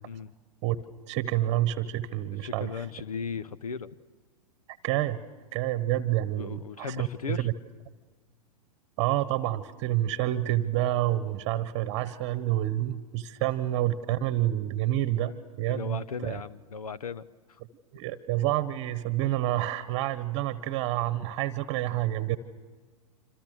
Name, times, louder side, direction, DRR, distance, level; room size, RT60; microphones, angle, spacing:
voice 1, 0.6-2.7 4.8-5.2 5.5-7.5 9.0-16.4 17.9-22.4, right 14 dB, 35° right, 14 dB, 1.2 m, -28 dB
voice 2, 2.4-3.9 6.3-7.5 15.7-17.6, left 6 dB, 70° left, 16 dB, 1.0 m, -37 dB
27.0 x 27.0 x 6.7 m, 1.4 s
figure-of-eight pair, 100°, 20 cm